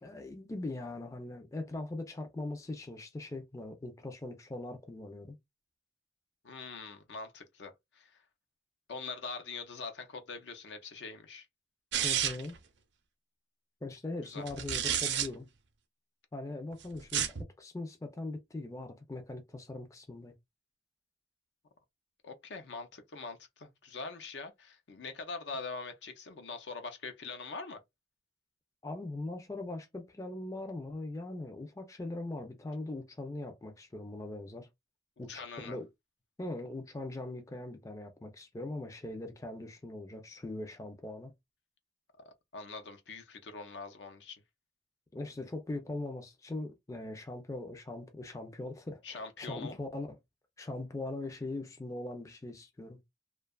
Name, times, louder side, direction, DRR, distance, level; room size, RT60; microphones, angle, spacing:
voice 1, 0.0-5.4 12.0-12.6 13.8-15.5 16.3-20.3 28.8-34.7 35.2-35.9 36.4-41.3 45.1-50.1 50.6-53.0, left 2 dB, 15° left, 0.4 m, -41 dB
voice 2, 6.4-8.2 8.9-11.5 14.3-14.5 22.2-27.8 35.3-35.8 42.3-44.4 49.0-49.8, left 4 dB, 75° left, 0.5 m, -43 dB
sound 1, 11.9-12.6 14.5-15.3 17.0-17.4, right 9 dB, 70° right, 0.5 m, -30 dB
2.7 x 2.2 x 2.3 m
head